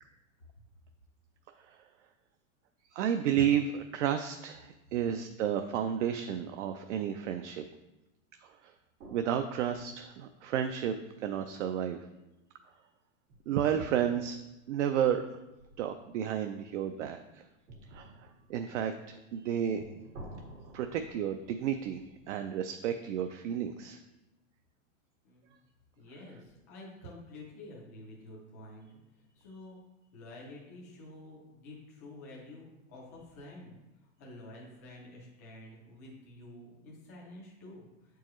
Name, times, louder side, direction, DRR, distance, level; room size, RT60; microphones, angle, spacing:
voice 1, 2.9-7.6 8.6-8.7 9.1-10.9 11.2-12.0 13.5-14.4 14.7-15.3 15.8-17.4 17.9-18.1 18.5-19.8 20.7-22.0 22.3-24.0, right 9 dB, 60° right, 7 dB, 0.5 m, -31 dB
sound 1, 9.0-11.4 13.3-16.2 17.7-22.4, right 1 dB, 90° right, 2.2 m, -53 dB
voice 2, 25.2-25.6 26.0-28.9 29.4-29.8 30.1-33.8 34.2-37.9, left 2 dB, 15° left, -4 dB, 0.3 m, -49 dB
7.4 x 4.6 x 3.0 m, 1.0 s
supercardioid pair, 170°, 42 cm